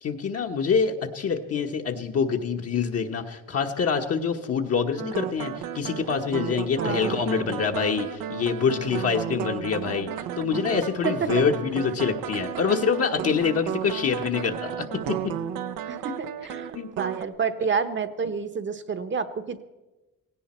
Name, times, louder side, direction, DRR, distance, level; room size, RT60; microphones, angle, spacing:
voice 1, 0.0-15.3 16.7-16.9, left 6 dB, 45° left, 3 dB, 1.2 m, -26 dB
sound 1, 5.0-17.2, right 10 dB, 90° right, 1.0 m, -33 dB
voice 2, 6.7-7.2 11.0-11.4 15.9-19.6, right 6 dB, 35° right, 9 dB, 1.0 m, -29 dB
18.0 x 17.0 x 4.4 m, 1.1 s
cardioid pair, 125°, 33 cm